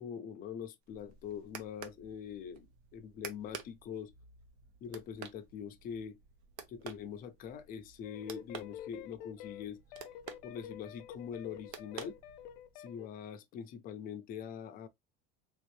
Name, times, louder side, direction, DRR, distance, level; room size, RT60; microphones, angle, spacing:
voice 1, 0.0-4.1 4.8-6.2 6.7-9.8 10.4-12.2 12.8-14.9, left 7 dB, 30° left, 0.4 m, -43 dB
sound 1, 0.8-12.8, right 7 dB, 90° right, 0.9 m, -51 dB
sound 2, 8.0-13.1, left 11 dB, 85° left, 0.5 m, -48 dB
3.5 x 2.7 x 3.1 m
cardioid pair, 180°, 31 cm